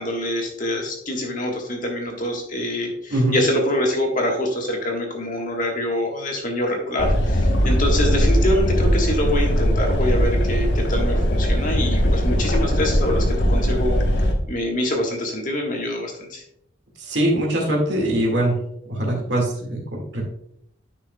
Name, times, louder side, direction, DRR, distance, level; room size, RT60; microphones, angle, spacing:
voice 1, 0.0-14.0 14.5-16.4, left 1 dB, 40° left, 1 dB, 1.5 m, -25 dB
sound 1, 7.0-14.3, equal, 60° left, 1.2 m, -20 dB
voice 2, 17.0-18.6 18.9-20.2, right 1 dB, 60° right, 0 dB, 2.0 m, -22 dB
9.9 x 6.0 x 2.3 m, 0.73 s
head